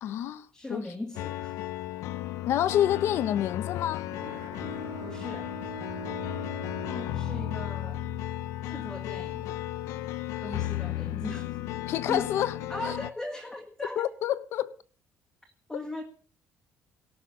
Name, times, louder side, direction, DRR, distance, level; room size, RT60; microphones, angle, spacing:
voice 1, 0.0-0.9 2.5-4.1 11.9-12.6 12.8-12.9 14.0-14.7, left 11 dB, 60° left, 1.1 m, -28 dB
voice 2, 0.5-1.6 5.0-5.5 6.9-8.0 8.6-9.6 10.4-11.6 12.1-12.3 12.7-14.1 15.7-16.0, left 1 dB, 10° left, 1.8 m, -38 dB
sound 1, 1.1-13.1, left 13 dB, 80° left, 0.8 m, -34 dB
Bowed string instrument, 4.1-8.3, right 3 dB, 75° right, 3.0 m, -43 dB
18.5 x 6.3 x 9.7 m
cardioid pair, 170°, 5 cm